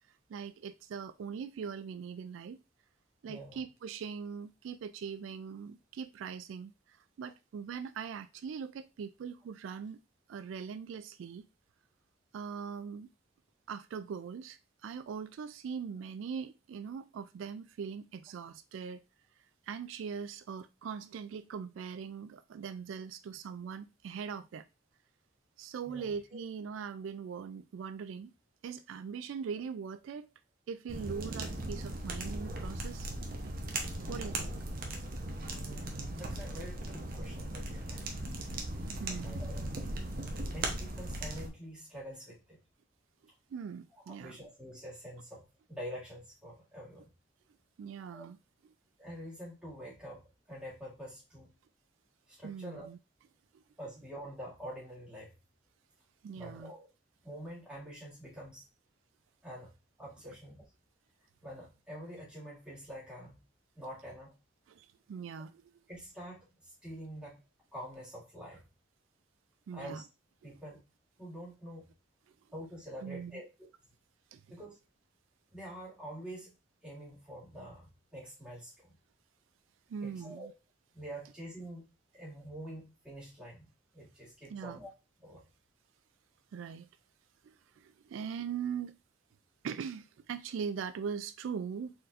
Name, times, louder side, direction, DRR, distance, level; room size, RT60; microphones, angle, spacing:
voice 1, 0.3-2.6 3.2-10.0 10.3-11.5 12.3-13.1 13.7-19.0 19.7-24.6 25.6-28.3 28.6-30.3 30.7-33.1 33.4-33.5 34.1-34.5 39.0-39.4 39.8-39.9 43.5-44.4 47.8-48.4 52.4-53.0 56.2-56.7 64.7-65.6 69.7-70.0 70.4-70.6 73.0-73.4 74.3-74.4 79.9-80.5 84.5-84.8 86.5-86.9 87.4-89.0 89.6-91.9, right 6 dB, 85° right, 0.3 m, -41 dB
voice 2, 3.2-3.6 25.9-26.4 35.5-38.1 39.1-39.7 40.5-42.6 44.1-47.1 48.1-48.2 49.0-51.5 52.3-52.9 53.8-55.3 56.3-56.9 57.2-58.6 59.4-59.7 60.0-60.6 61.4-63.4 63.8-64.3 65.9-67.4 67.7-68.6 69.7-70.0 70.4-70.8 71.2-71.9 72.5-73.7 74.5-74.8 75.5-76.5 76.8-79.0 80.0-80.5 80.9-81.9 82.1-84.9 85.2-85.4, equal, 5° right, 2.2 m, -46 dB
sound 1, 30.9-41.5, right 1 dB, 50° right, 0.8 m, -38 dB
4.3 x 4.1 x 2.5 m
head